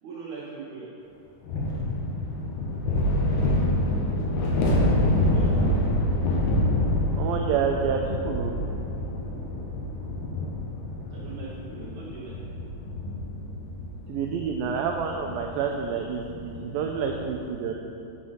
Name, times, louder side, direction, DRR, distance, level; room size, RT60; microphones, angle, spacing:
voice 1, 0.0-0.9 5.2-5.6 11.1-12.4, right 5 dB, 70° right, -6 dB, 1.8 m, -40 dB
sound 1, 1.5-17.3, left 1 dB, 75° left, 3.1 m, -27 dB
voice 2, 7.2-8.5 14.1-17.7, right 6 dB, 90° right, 2 dB, 2.0 m, -28 dB
9.1 x 6.3 x 5.6 m, 2.7 s
omnidirectional pair, 4.7 m